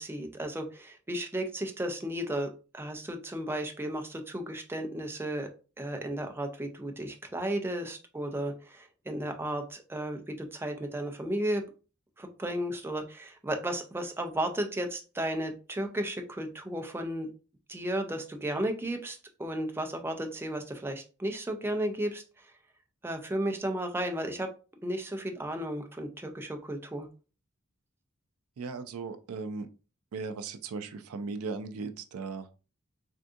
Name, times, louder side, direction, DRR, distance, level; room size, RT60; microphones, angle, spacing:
voice 1, 0.0-5.5 5.8-11.6 12.2-17.3 17.7-22.2 23.0-24.5 24.8-27.1, right 1 dB, 10° right, 5 dB, 0.4 m, -34 dB
voice 2, 28.6-29.7 30.1-32.5, right 4 dB, 80° right, 8 dB, 0.4 m, -37 dB
3.5 x 2.6 x 2.4 m, 0.34 s
head